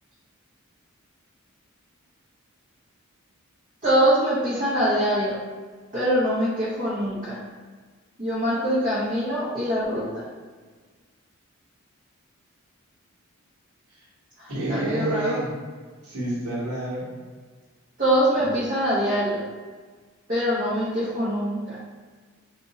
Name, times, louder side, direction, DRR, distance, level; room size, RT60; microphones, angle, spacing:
voice 1, 3.8-5.3 5.9-7.4 8.2-10.2 14.4-15.4 18.0-19.4 20.3-21.8, equal, 35° right, -10 dB, 0.8 m, -23 dB
voice 2, 14.5-15.5 16.0-17.1 18.4-18.5, right 1 dB, 90° right, -8 dB, 1.1 m, -29 dB
2.7 x 2.5 x 3.9 m, 1.5 s
head